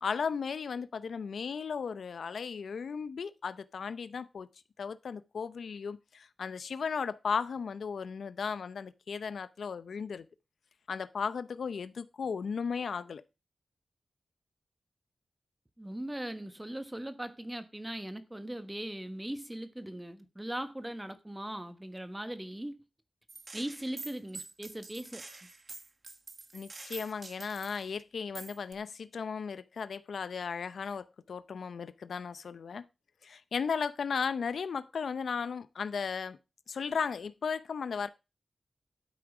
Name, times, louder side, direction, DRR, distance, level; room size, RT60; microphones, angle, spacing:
voice 1, 0.0-4.5 4.8-10.3 10.9-13.2 26.5-32.9 33.2-36.4 36.7-38.1, left 6 dB, 85° left, 0.7 m, -35 dB
voice 2, 15.8-22.8 23.5-25.2, right 1 dB, 10° right, 1.3 m, -39 dB
Gunshot gunfire, 23.3-27.9 28.3-28.7, right 3 dB, 35° right, 1.3 m, -46 dB
12.5 x 8.6 x 5.0 m
wide cardioid pair, 175°, 0 cm